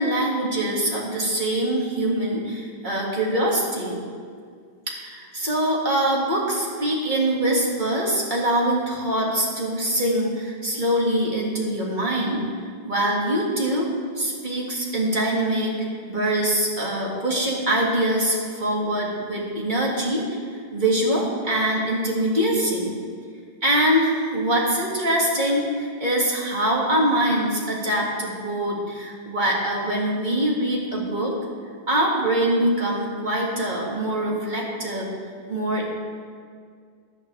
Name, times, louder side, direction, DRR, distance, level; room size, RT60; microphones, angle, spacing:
voice 1, 0.0-4.0 4.9-12.5 12.8-20.2 20.7-22.9 23.6-31.4 31.9-35.1 35.5-35.9, right 1 dB, 50° right, -4 dB, 2.4 m, -23 dB
14.5 x 11.5 x 3.4 m, 2.1 s
omnidirectional pair, 1.0 m